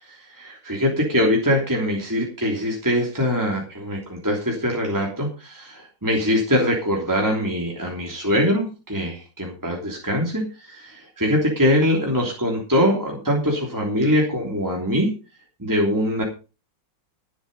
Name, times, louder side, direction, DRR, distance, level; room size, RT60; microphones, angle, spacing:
voice 1, 0.0-15.1 15.6-16.2, equal, 10° right, -1 dB, 3.3 m, -23 dB
15.0 x 8.1 x 5.4 m, 0.32 s
omnidirectional pair, 2.0 m